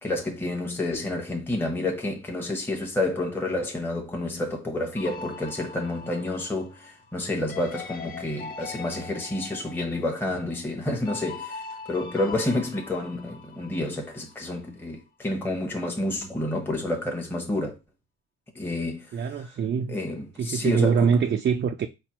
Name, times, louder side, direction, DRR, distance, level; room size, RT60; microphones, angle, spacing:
voice 1, 0.0-17.8 18.5-19.5 19.9-21.2, left 2 dB, 5° left, 1.0 m, -29 dB
sound 1, 5.0-14.4, left 4 dB, 30° left, 0.6 m, -42 dB
voice 2, 19.1-20.0 20.4-21.9, right 6 dB, 35° right, 0.4 m, -23 dB
4.2 x 2.2 x 4.4 m
cardioid pair, 90°, 30 cm